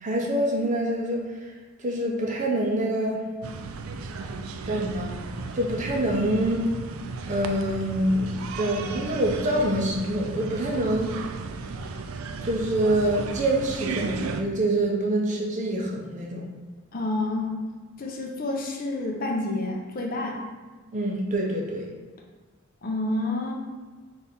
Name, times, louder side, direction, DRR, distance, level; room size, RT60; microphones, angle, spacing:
voice 1, 0.0-1.5 1.8-3.3 4.7-5.2 5.5-6.8 7.3-8.3 8.6-11.2 12.4-16.5 20.9-21.9, right 1 dB, 35° right, 0 dB, 0.5 m, -26 dB
sound 1, 3.4-14.4, right 4 dB, 90° right, 0.3 m, -35 dB
voice 2, 16.9-17.6 18.0-20.4 22.8-23.5, left 2 dB, 45° left, 0 dB, 0.5 m, -29 dB
4.2 x 2.5 x 3.6 m, 1.4 s
head